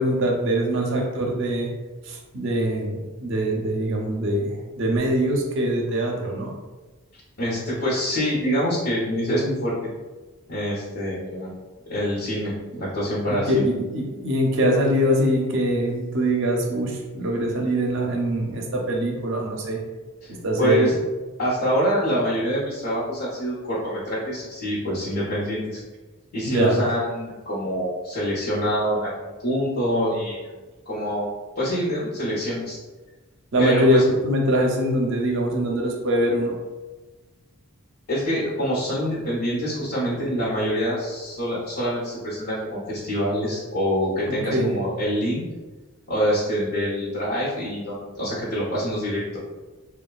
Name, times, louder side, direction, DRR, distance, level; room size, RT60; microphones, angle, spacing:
voice 1, 0.0-1.7 2.1-6.5 13.3-19.8 20.3-20.9 26.5-26.8 33.5-36.6 44.3-44.8, equal, 55° right, 1 dB, 0.5 m, -23 dB
voice 2, 7.4-9.9 10.5-11.5 11.9-13.7 20.2-20.3 20.6-20.9 21.4-25.8 26.3-30.5 30.9-32.8 33.6-34.0 38.1-45.4 46.1-49.4, equal, 85° left, -9 dB, 0.8 m, -25 dB
2.9 x 2.2 x 2.3 m, 1.2 s
head